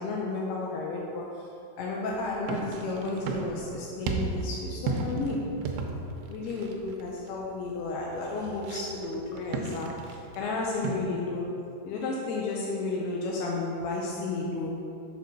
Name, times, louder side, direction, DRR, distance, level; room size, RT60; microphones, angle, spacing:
voice 1, 0.0-5.6 6.3-11.5 11.8-14.8, left 3 dB, 80° left, -2 dB, 2.6 m, -32 dB
sound 1, 2.1-11.0, right 4 dB, 85° right, 2.4 m, -35 dB
6.8 x 4.7 x 6.4 m, 2.7 s
omnidirectional pair, 4.6 m